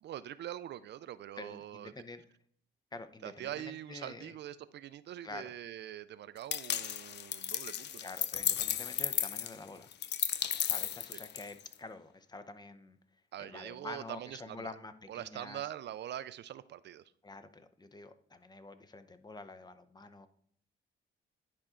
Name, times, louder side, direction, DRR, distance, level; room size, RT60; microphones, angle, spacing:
voice 1, 0.0-1.9 3.2-8.0 11.1-11.2 13.3-14.7 15.1-17.0, right 12 dB, 60° right, 0.4 m, -43 dB
voice 2, 1.4-2.2 2.9-4.3 5.2-5.5 8.0-9.9 10.7-13.0 13.4-15.6 17.2-20.3, left 3 dB, 20° left, 0.7 m, -47 dB
sound 1, 6.5-11.7, left 10 dB, 60° left, 0.5 m, -34 dB
10.5 x 4.4 x 3.7 m
cardioid pair, 90°, 20 cm